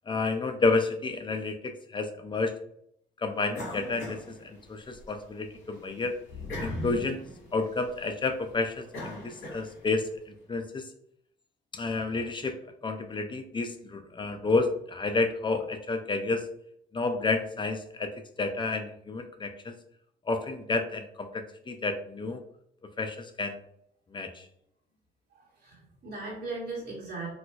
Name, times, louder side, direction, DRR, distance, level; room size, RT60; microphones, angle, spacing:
voice 1, 0.1-2.5 3.2-6.1 6.6-7.2 7.5-10.1 10.5-10.9 11.7-16.5 16.9-18.1 18.4-19.7 20.3-22.4 23.0-23.6 24.1-24.4, left 3 dB, 25° left, 7 dB, 0.4 m, -30 dB
sound 1, 3.5-5.1 5.5-10.0, left 1 dB, 70° left, 1.5 m, -40 dB
voice 2, 25.3-27.3, right 3 dB, 60° right, -6 dB, 1.3 m, -38 dB
4.2 x 2.3 x 2.3 m, 0.70 s
cardioid pair, 90°, 20 cm